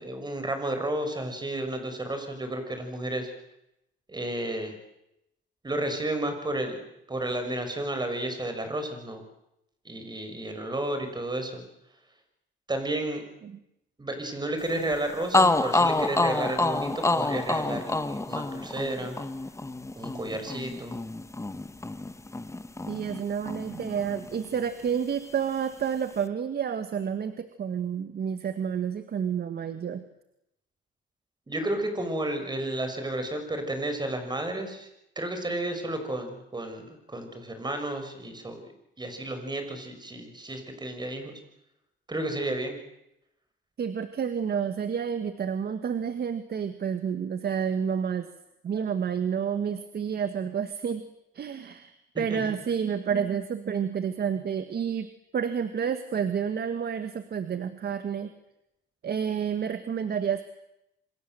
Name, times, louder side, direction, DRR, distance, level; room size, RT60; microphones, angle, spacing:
voice 1, 0.0-3.3 4.1-4.8 5.6-9.2 9.8-11.6 12.7-13.2 14.0-19.2 19.9-21.0 31.5-34.9 35.1-38.7 39.0-41.4 42.1-42.8 52.3-52.5, right 1 dB, 20° right, 6 dB, 6.6 m, -32 dB
sound 1, 14.9-15.0 15.3-23.2 23.5-24.6, left 2 dB, 15° left, 1.5 m, -28 dB
voice 2, 22.9-30.0 43.8-48.3 48.6-51.1 51.3-55.1 55.3-58.3 59.0-60.4, right 7 dB, 55° right, 9 dB, 1.8 m, -30 dB
28.0 x 25.0 x 7.9 m, 0.86 s
cardioid pair, 90°, 20 cm